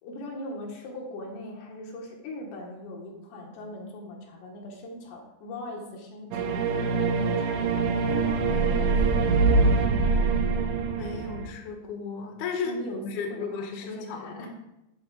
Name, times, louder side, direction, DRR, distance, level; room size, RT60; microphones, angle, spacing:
voice 1, 0.0-7.8 8.1-8.8 9.1-9.5 12.6-14.5, left 1 dB, 80° left, -1 dB, 3.8 m, -40 dB
sound 1, 6.3-11.5, right 4 dB, 90° right, 3.0 m, -24 dB
voice 2, 10.0-14.5, left 4 dB, 60° left, 2 dB, 2.1 m, -35 dB
11.5 x 3.9 x 6.3 m, 0.90 s
omnidirectional pair, 5.0 m